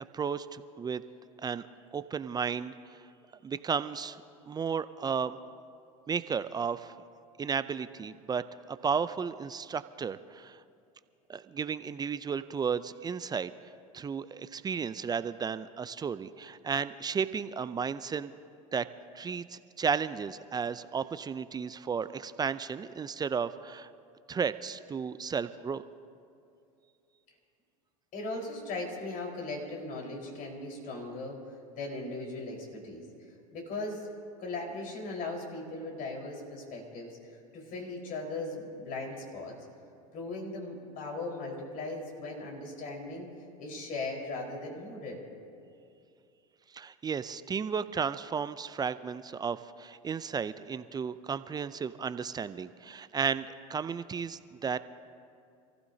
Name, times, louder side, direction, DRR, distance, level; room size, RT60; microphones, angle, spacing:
voice 1, 0.1-1.0 1.4-1.7 1.9-3.0 3.4-5.4 6.1-6.9 7.4-8.4 8.7-10.6 11.3-13.5 13.9-18.3 18.7-18.9 19.1-23.9 24.3-25.8 46.7-54.8, right 6 dB, 20° right, 14 dB, 0.5 m, -33 dB
voice 2, 28.1-31.4 31.8-33.0 33.5-34.1 34.4-37.2 37.5-39.6 40.1-43.3 43.6-45.2, left 2 dB, 50° left, 0 dB, 4.6 m, -38 dB
27.5 x 15.0 x 2.8 m, 2.5 s
hypercardioid pair, 90°, 18 cm